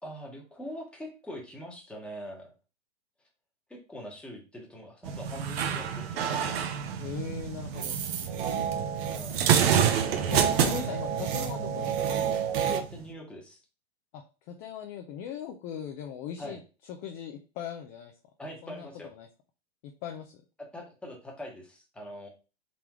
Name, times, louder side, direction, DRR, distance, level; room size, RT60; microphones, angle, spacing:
voice 1, 0.0-2.5 3.7-6.6 9.1-9.4 12.7-13.6 16.4-16.6 18.4-19.1 20.7-22.3, equal, 5° left, -1 dB, 1.0 m, -43 dB
sound 1, 5.0-13.1, right 8 dB, 65° right, 0.7 m, -29 dB
voice 2, 7.0-8.0 9.7-12.1 14.1-16.6 16.9-18.1 18.6-19.3 20.0-20.4, left 8 dB, 25° left, 5 dB, 0.3 m, -39 dB
sound 2, 7.7-12.8, right 8 dB, 30° right, 0.6 m, -31 dB
3.8 x 3.3 x 3.0 m, 0.32 s
hypercardioid pair, 135°, 33 cm